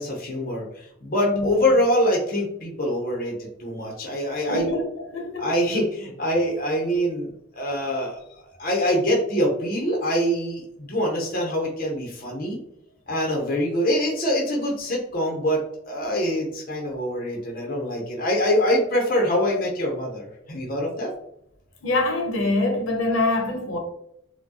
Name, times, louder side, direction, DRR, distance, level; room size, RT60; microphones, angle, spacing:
voice 1, 0.0-4.7 5.4-7.3 7.5-8.2 8.6-12.6 13.1-21.1, equal, 45° left, 0.7 m, -24 dB
voice 2, 1.2-1.7 4.5-5.5 21.8-23.8, left 2 dB, 70° left, 0.9 m, -25 dB
4.4 x 2.2 x 2.8 m
head